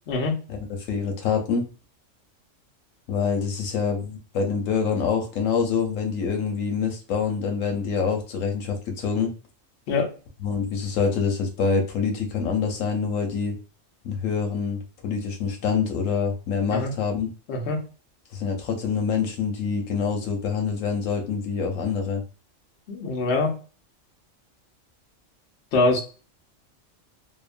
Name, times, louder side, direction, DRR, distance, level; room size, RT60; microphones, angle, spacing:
voice 1, 0.5-1.7 3.1-9.3 10.4-13.6 14.0-17.3 18.3-22.2, left 6 dB, 90° left, 3 dB, 1.1 m, -26 dB
voice 2, 22.9-23.5 25.7-26.0, left 3 dB, 65° left, 1 dB, 0.9 m, -23 dB
2.9 x 2.1 x 2.4 m, 0.35 s
omnidirectional pair, 1.3 m